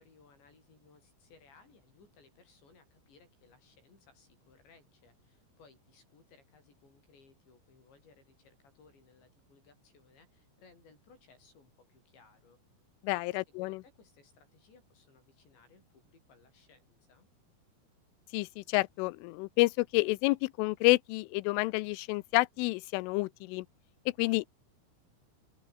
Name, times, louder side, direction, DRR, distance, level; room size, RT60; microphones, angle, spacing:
voice 1, 0.0-12.6 13.1-17.3, left 4 dB, 60° left, 10.0 m, -62 dB
voice 2, 13.0-13.8 18.3-23.7 24.1-24.5, left 23 dB, 85° left, 3.0 m, -29 dB
open air
omnidirectional pair, 5.8 m